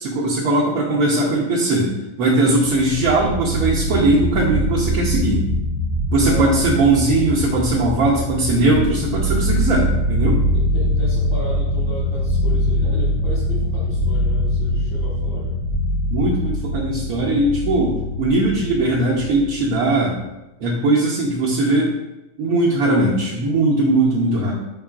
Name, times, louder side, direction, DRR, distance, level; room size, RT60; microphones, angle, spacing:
voice 1, 0.0-1.9 2.2-5.4 6.1-10.4 16.1-20.2 20.6-21.9 22.4-24.5, right 2 dB, 85° right, -6 dB, 1.2 m, -19 dB
sound 1, 2.7-19.9, equal, 65° left, 0.4 m, -23 dB
voice 2, 6.2-6.7 10.5-15.6, equal, 50° left, -9 dB, 1.3 m, -34 dB
4.6 x 3.6 x 2.4 m, 0.95 s
omnidirectional pair, 1.5 m